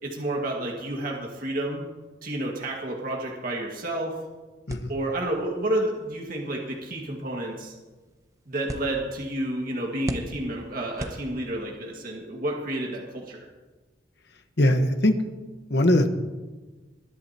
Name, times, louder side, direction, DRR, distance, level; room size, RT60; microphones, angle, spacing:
voice 1, 0.0-1.9 2.2-4.2 4.9-7.7 8.5-13.4, right 1 dB, 50° right, -1 dB, 1.8 m, -30 dB
sound 1, 4.7-11.8, right 1 dB, 15° right, 0.8 m, -41 dB
voice 2, 14.6-15.1 15.7-16.1, left 1 dB, 60° left, 7 dB, 1.2 m, -20 dB
21.0 x 10.5 x 2.9 m, 1.3 s
head